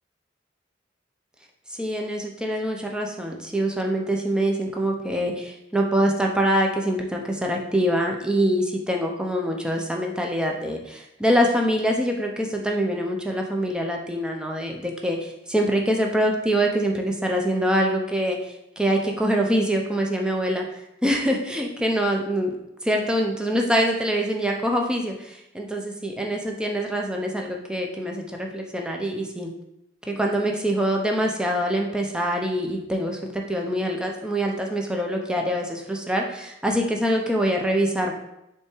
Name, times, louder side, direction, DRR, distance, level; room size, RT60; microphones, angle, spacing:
voice 1, 1.7-22.5 22.8-29.5 30.1-38.2, equal, 5° right, 1 dB, 0.7 m, -24 dB
6.1 x 3.6 x 4.5 m, 0.83 s
head